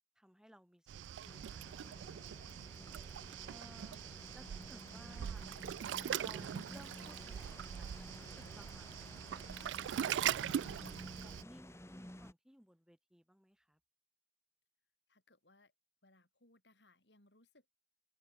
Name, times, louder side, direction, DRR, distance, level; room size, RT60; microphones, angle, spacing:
voice 1, 0.2-2.8 3.5-4.0 4.3-5.4 6.2-9.5 10.0-13.8, equal, 5° right, 4.3 m, -61 dB
Waves surf, 0.9-11.4, right 10 dB, 90° right, 0.3 m, -41 dB
sound 1, 1.2-12.3, left 1 dB, 15° left, 1.9 m, -53 dB
voice 2, 15.1-15.7 16.0-17.8, left 2 dB, 75° left, 6.7 m, -68 dB
head